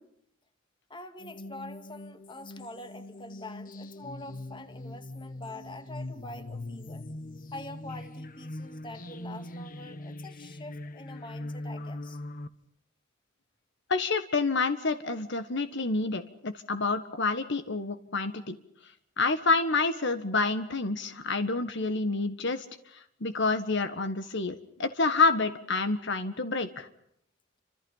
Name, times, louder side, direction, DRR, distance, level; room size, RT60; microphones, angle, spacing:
voice 1, 0.9-7.1 7.5-12.2, left 2 dB, 25° left, 9 dB, 2.3 m, -45 dB
sound 1, 1.2-12.5, left 1 dB, 45° left, 1.3 m, -41 dB
voice 2, 13.9-18.6 19.2-22.6 22.9-26.9, left 3 dB, 60° left, 10 dB, 1.6 m, -28 dB
29.5 x 26.5 x 5.7 m, 0.72 s
head